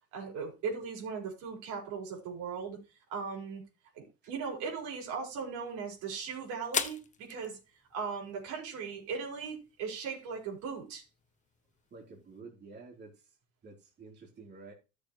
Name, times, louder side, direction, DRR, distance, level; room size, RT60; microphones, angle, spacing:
voice 1, 0.1-2.8 3.1-3.6 3.9-7.6 7.9-11.0, right 5 dB, 75° right, 5.0 m, -38 dB
sound 1, 4.3-12.4, left 6 dB, 25° left, 0.9 m, -44 dB
voice 2, 11.9-13.4 13.6-14.7, right 4 dB, 35° right, 3.6 m, -50 dB
13.5 x 6.9 x 3.2 m
cardioid pair, 135°, 30 cm